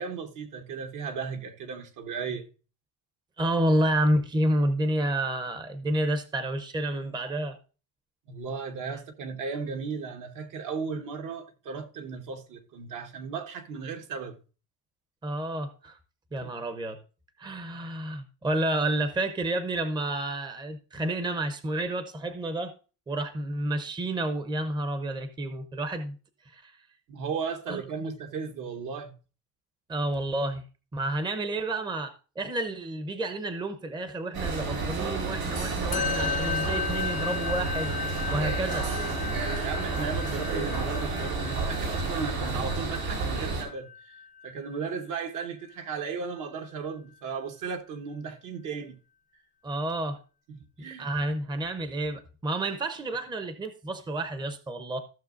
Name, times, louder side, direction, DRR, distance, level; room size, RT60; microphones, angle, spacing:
voice 1, 0.0-2.5 8.3-14.4 16.4-16.5 27.1-29.1 39.3-49.0 50.5-51.1, right 5 dB, 60° right, 1.3 m, -36 dB
voice 2, 3.4-7.6 15.2-16.0 16.3-17.0 17.4-22.7 23.1-26.2 26.4-26.8 27.7-27.8 29.9-30.6 30.9-37.9 38.3-38.9 49.6-50.2 51.0-55.0, right 1 dB, 15° right, 0.7 m, -30 dB
sound 1, 34.3-43.6, right 3 dB, 85° right, 3.4 m, -30 dB
Musical instrument, 35.9-45.5, left 7 dB, 25° left, 0.5 m, -35 dB
15.0 x 6.3 x 2.5 m
cardioid pair, 140°, 35 cm